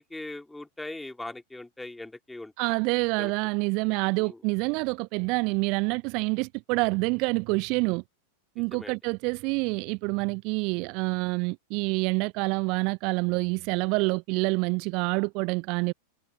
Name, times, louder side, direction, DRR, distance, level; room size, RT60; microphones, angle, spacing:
voice 1, 0.0-2.7 3.2-3.3 4.2-4.4 8.7-9.0, left 2 dB, 5° left, 3.7 m, -40 dB
voice 2, 2.6-8.0 8.6-15.9, right 30 dB, 45° right, 0.5 m, -27 dB
figure-of-eight pair, 90°, 0 cm